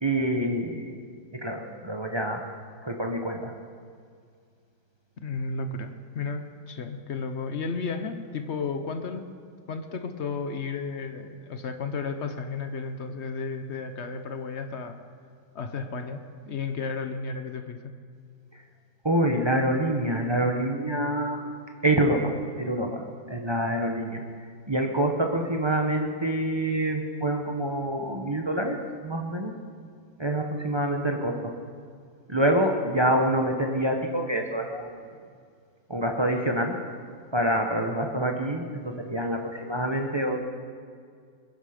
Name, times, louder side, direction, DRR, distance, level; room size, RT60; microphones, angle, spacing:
voice 1, 0.0-1.0 1.3-2.4 2.8-3.5 19.0-21.4 21.8-23.0 23.3-24.2 24.7-29.5 30.2-31.5 32.3-34.9 35.9-36.7 37.3-40.4, right 1 dB, 30° right, 2 dB, 0.5 m, -26 dB
voice 2, 5.2-9.3 9.7-15.0 15.5-17.8, left 4 dB, 50° left, 7 dB, 0.8 m, -33 dB
21.5 x 10.0 x 5.1 m, 2.2 s
omnidirectional pair, 2.2 m